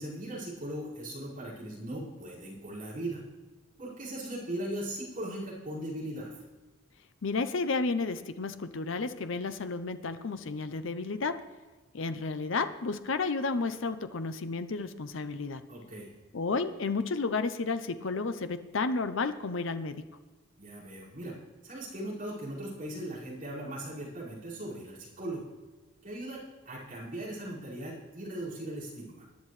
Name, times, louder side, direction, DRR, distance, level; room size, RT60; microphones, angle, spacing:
voice 1, 0.0-3.2 3.8-6.3 15.7-16.1 20.6-21.3 21.6-25.5 26.0-29.3, right 1 dB, 40° right, -8 dB, 5.2 m, -39 dB
voice 2, 7.2-11.4 11.9-15.6 16.3-20.0, left 4 dB, 60° left, 10 dB, 0.6 m, -32 dB
21.0 x 10.5 x 3.2 m, 1.2 s
head